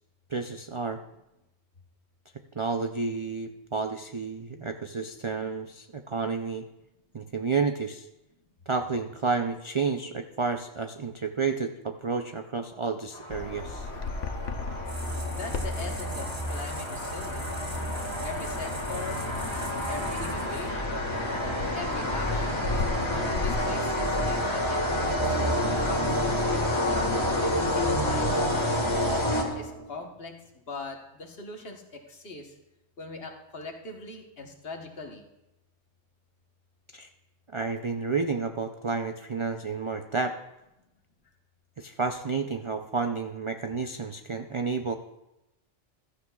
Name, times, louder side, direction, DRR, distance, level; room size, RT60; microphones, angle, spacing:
voice 1, 0.3-1.0 2.6-6.7 7.1-8.1 8.7-13.9 36.9-37.1 37.5-40.3 41.8-44.9, right 4 dB, 50° right, 6 dB, 0.3 m, -30 dB
sound 1, 13.1-29.9, left 1 dB, 25° left, 1.6 m, -29 dB
Bird vocalization bird call bird song, 13.3-23.5, left 4 dB, 85° left, 1.2 m, -37 dB
sound 2, 14.8-20.9, equal, 15° right, 1.4 m, -38 dB
voice 2, 15.3-17.5 18.2-19.3 19.9-21.1 21.6-22.7 23.1-26.2 26.7-27.1 27.4-28.5 29.1-32.5 33.0-35.2, left 3 dB, 55° left, 3 dB, 1.4 m, -40 dB
15.5 x 13.5 x 2.3 m, 0.93 s
omnidirectional pair, 1.2 m